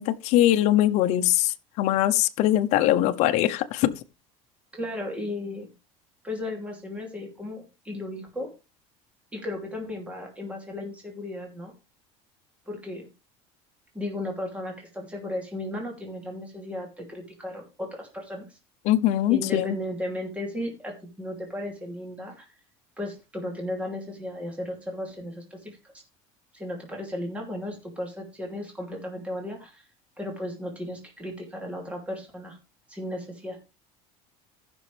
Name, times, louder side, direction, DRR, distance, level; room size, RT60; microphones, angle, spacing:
voice 1, 0.0-3.9 18.8-19.8, left 13 dB, 60° left, 0.8 m, -22 dB
voice 2, 4.7-5.7 6.2-8.5 9.3-11.7 12.7-13.1 13.9-18.6 19.3-22.5 23.0-25.9 26.5-29.8 30.2-32.6 32.9-33.6, left 1 dB, 10° right, 2.8 m, -35 dB
15.0 x 6.2 x 3.4 m
cardioid pair, 135°, 13 cm